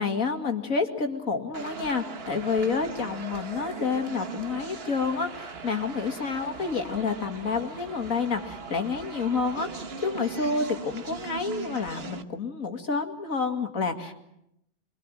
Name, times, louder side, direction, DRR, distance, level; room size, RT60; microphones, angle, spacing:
voice 1, 0.0-14.1, left 4 dB, 85° left, 5 dB, 2.7 m, -29 dB
sound 1, 1.5-12.2, right 5 dB, 50° right, 1.5 m, -39 dB
25.0 x 24.0 x 7.8 m, 0.80 s
omnidirectional pair, 1.4 m